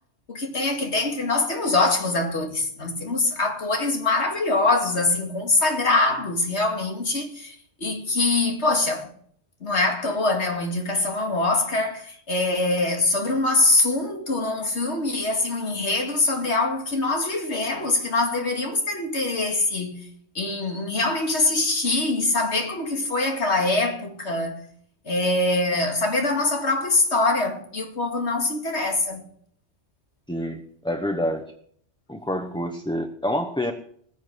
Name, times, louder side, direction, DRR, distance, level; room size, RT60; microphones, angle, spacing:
voice 1, 0.3-9.1 9.6-20.1 20.3-24.6 25.1-29.2, left 2 dB, 65° left, 2.5 m, -24 dB
voice 2, 30.3-31.4 32.1-33.7, left 1 dB, 5° left, 0.8 m, -27 dB
20.0 x 7.3 x 6.3 m
omnidirectional pair, 1.2 m